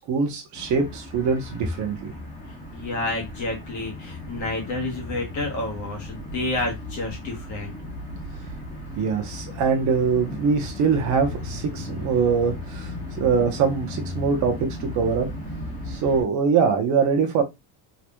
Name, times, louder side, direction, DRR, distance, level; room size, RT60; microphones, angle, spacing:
voice 1, 0.1-2.1 9.0-12.9 13.2-14.6 14.8-15.3 15.9-17.4, right 5 dB, 35° right, 0.9 m, -23 dB
sound 1, 0.5-16.2, left 1 dB, 15° left, 0.9 m, -36 dB
voice 2, 2.7-7.7, left 2 dB, 35° left, 1.1 m, -30 dB
3.8 x 3.1 x 2.3 m
cardioid pair, 170°, 49 cm